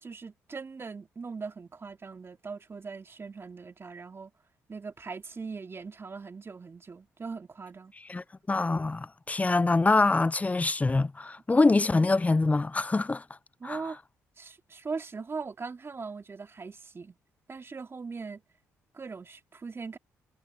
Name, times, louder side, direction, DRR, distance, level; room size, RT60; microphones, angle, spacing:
voice 1, 0.0-4.3 4.7-7.9 13.6-14.0 14.4-17.2 17.5-18.4 18.9-20.0, right 4 dB, 35° right, 2.5 m, -40 dB
voice 2, 8.1-13.2 13.6-13.8, left 3 dB, 20° left, 0.5 m, -25 dB
hypercardioid pair, 55°, 7 cm